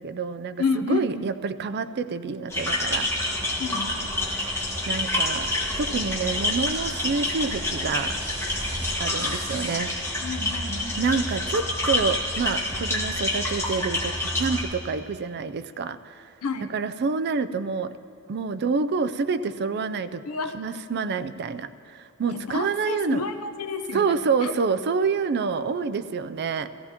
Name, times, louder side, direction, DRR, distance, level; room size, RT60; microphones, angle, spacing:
voice 1, 0.0-3.1 4.4-5.5 5.8-8.2 9.0-9.9 11.0-16.3 16.6-18.0 18.3-20.2 20.5-23.2 23.9-26.7, right 5 dB, 50° right, 11 dB, 0.4 m, -28 dB
voice 2, 0.6-1.3 3.6-4.1 8.9-9.5 10.2-11.0 16.4-16.7 20.3-20.6 22.3-24.5, left 4 dB, 80° left, 6 dB, 0.8 m, -30 dB
sound 1, 2.5-14.6, left 1 dB, 10° left, 1.7 m, -28 dB
sound 2, 3.1-9.8, equal, 10° right, 1.8 m, -43 dB
18.5 x 15.0 x 2.9 m, 2.5 s
head